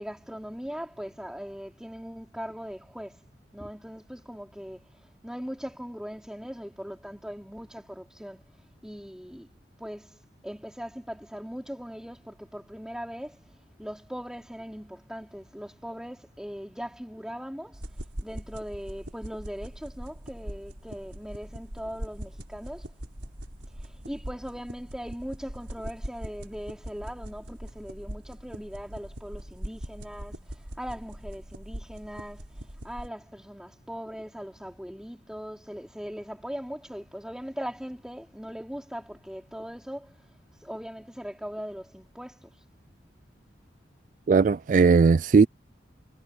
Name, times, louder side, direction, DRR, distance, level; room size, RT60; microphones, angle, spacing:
voice 1, 0.0-3.2 3.5-4.8 5.2-8.4 8.8-9.5 9.8-13.4 13.8-17.8 18.2-22.9 23.8-32.5 32.8-40.2 40.6-42.5, equal, 5° right, 4.5 m, -39 dB
sound 1, 17.7-33.1, equal, 75° right, 4.7 m, -41 dB
voice 2, 44.3-45.5, right 5 dB, 45° right, 0.3 m, -18 dB
head